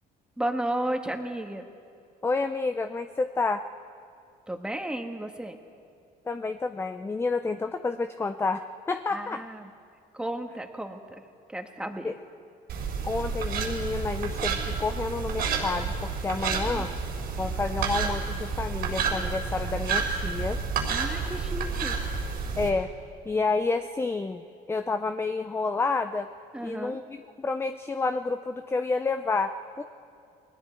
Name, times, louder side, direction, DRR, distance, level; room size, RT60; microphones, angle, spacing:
voice 1, 0.4-1.6 4.5-5.6 9.1-9.7 10.1-11.2 11.5-12.1 16.6-16.9 20.9-22.0 26.5-27.0, right 1 dB, 5° right, 4 dB, 1.7 m, -33 dB
voice 2, 2.2-3.6 6.3-9.4 12.0-12.1 13.0-16.9 17.4-20.6 22.6-22.9 23.2-24.4 24.7-26.3 26.6-29.8, left 3 dB, 15° left, 8 dB, 0.6 m, -29 dB
sound 1, 12.7-22.7, right 5 dB, 70° right, 4.2 m, -30 dB
29.5 x 20.5 x 4.6 m, 2.4 s
cardioid pair, 110°, 17 cm